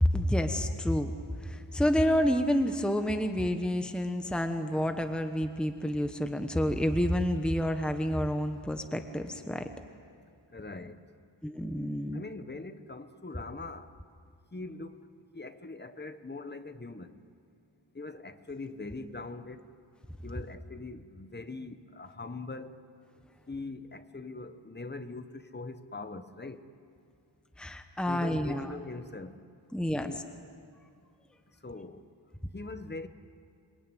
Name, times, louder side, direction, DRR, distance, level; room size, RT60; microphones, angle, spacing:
voice 1, 0.0-1.1 1.4-9.7 11.4-12.2 27.6-28.7 29.7-30.1, equal, ahead, 7 dB, 1.2 m, -29 dB
voice 2, 10.5-11.0 12.1-13.9 14.5-15.0 15.3-17.2 17.9-19.7 20.2-22.8 23.5-26.7 28.1-29.4 30.0-30.3 31.6-32.1 32.5-33.1, left 3 dB, 25° left, 9 dB, 1.2 m, -42 dB
27.5 x 22.0 x 9.2 m, 2.3 s
wide cardioid pair, 110°, 44 cm